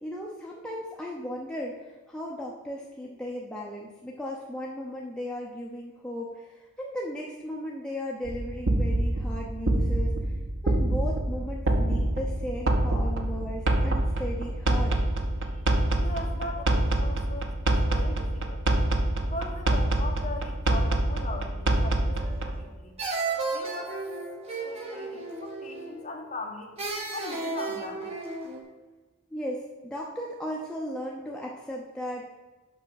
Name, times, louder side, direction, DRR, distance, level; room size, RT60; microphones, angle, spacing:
voice 1, 0.0-10.1 10.6-15.0 29.3-32.5, equal, 5° left, -3 dB, 0.6 m, -36 dB
sound 1, 8.2-22.6, right 1 dB, 55° right, 0.8 m, -26 dB
voice 2, 15.4-18.7 19.2-23.0 23.5-24.0 24.6-26.7 27.1-28.1, left 2 dB, 30° left, 0 dB, 1.2 m, -40 dB
sound 2, 22.2-22.7 23.0-26.1 26.8-28.6, right 3 dB, 30° right, 1.2 m, -33 dB
6.1 x 5.6 x 5.8 m, 1.2 s
head